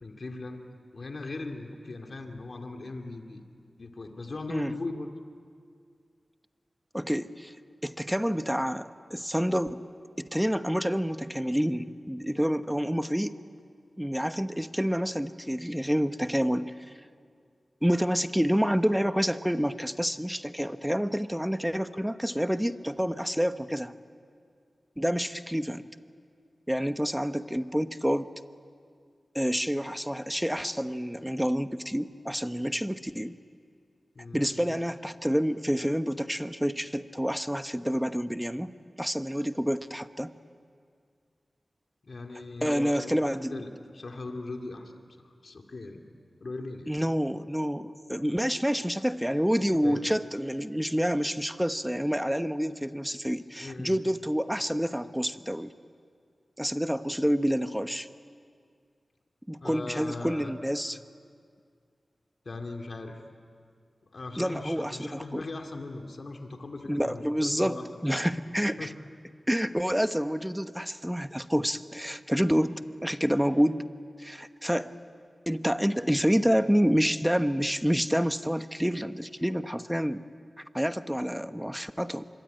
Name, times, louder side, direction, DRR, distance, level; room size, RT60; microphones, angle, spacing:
voice 1, 0.0-0.6 0.9-3.4 3.8-5.1 34.2-34.8 42.0-44.9 45.2-46.0 46.4-46.9 49.7-50.2 53.6-54.0 59.6-60.5 62.5-63.2 64.1-68.1 68.8-68.9, left 2 dB, 65° left, 3 dB, 2.4 m, -39 dB
voice 2, 6.9-7.5 7.8-9.8 10.2-13.3 14.0-16.7 17.8-23.9 25.0-25.9 26.7-28.3 29.3-33.3 34.3-38.7 39.0-40.3 42.6-43.6 46.9-55.7 56.6-58.1 59.5-61.0 64.4-65.4 66.9-68.9 69.5-73.8 74.2-75.0 75.5-80.2 80.7-82.3, equal, 5° right, 10 dB, 1.1 m, -28 dB
26.0 x 23.0 x 9.2 m, 2.2 s
cardioid pair, 45°, 0 cm